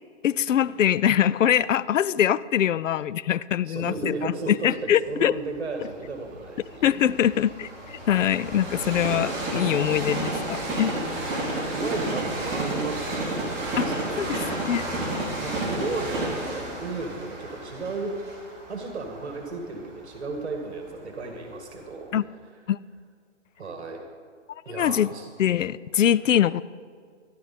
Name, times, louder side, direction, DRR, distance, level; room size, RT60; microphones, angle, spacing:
voice 1, 0.2-5.3 6.8-10.9 14.2-14.4 14.7-14.8 22.1-22.2 22.7-22.8 24.7-25.1 25.4-26.6, left 10 dB, 75° left, 19 dB, 0.5 m, -23 dB
voice 2, 3.6-6.9 9.8-10.1 11.7-18.2 18.6-22.1 23.6-24.0 24.7-25.3, right 3 dB, 60° right, 3 dB, 1.8 m, -34 dB
Train, 5.2-21.2 21.8-21.9, right 1 dB, 5° right, 2.2 m, -32 dB
14.5 x 12.0 x 4.2 m, 2.1 s
hypercardioid pair, 170°, 38 cm